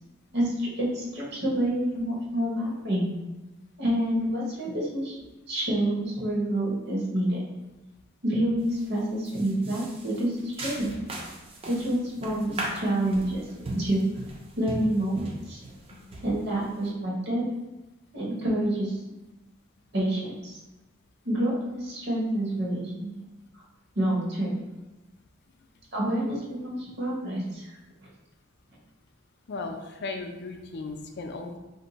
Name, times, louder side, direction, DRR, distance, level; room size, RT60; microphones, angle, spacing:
voice 1, 0.3-3.1 3.8-5.2 5.5-7.4 8.2-10.9 11.7-14.0 14.6-15.6 16.2-17.5 18.1-19.0 19.9-20.6 21.2-23.1 24.0-24.5 25.9-27.7, right 1 dB, 55° right, -4 dB, 0.8 m, -28 dB
sound 1, 8.6-8.9 9.2-16.9, right 1 dB, 30° right, 0.4 m, -38 dB
voice 2, 29.5-31.6, left 3 dB, 55° left, 4 dB, 0.4 m, -36 dB
2.6 x 2.2 x 3.9 m, 1.1 s
head